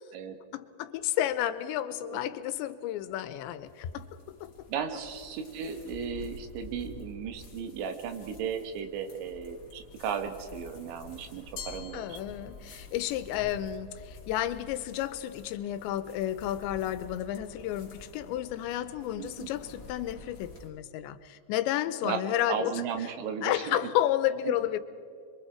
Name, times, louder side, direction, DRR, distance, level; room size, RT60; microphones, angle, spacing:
voice 1, 0.5-4.1 4.4-4.5 11.9-22.8 23.4-24.8, left 12 dB, 85° left, 12 dB, 3.0 m, -31 dB
sound 1, 3.0-20.7, left 2 dB, 25° left, 2.4 m, -49 dB
voice 2, 4.7-12.2 19.1-19.5 22.0-22.2 22.5-23.9 24.5-24.6, right 7 dB, 85° right, 7 dB, 3.7 m, -35 dB
Glass, 11.6-13.0, left 8 dB, 60° left, 2.5 m, -45 dB
26.0 x 23.5 x 4.6 m, 2.4 s
omnidirectional pair, 5.2 m